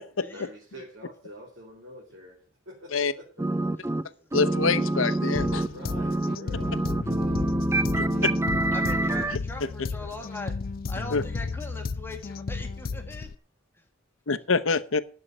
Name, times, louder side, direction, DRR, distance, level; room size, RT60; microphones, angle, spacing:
voice 1, 0.3-3.4 4.1-4.2 5.7-8.3 9.4-10.3, equal, 65° right, 2.9 m, -47 dB
sound 1, 3.4-4.0 4.3-9.4, right 2 dB, 15° right, 0.5 m, -26 dB
voice 2, 4.3-5.7 8.0-8.1 11.1-11.2 14.3-15.0, left 4 dB, 70° left, 0.9 m, -25 dB
sound 2, 5.3-13.3, left 4 dB, 45° left, 0.4 m, -34 dB
voice 3, 8.7-10.5 10.9-13.3 13.7-13.8, left 2 dB, 10° left, 1.6 m, -40 dB
11.5 x 6.6 x 7.7 m
head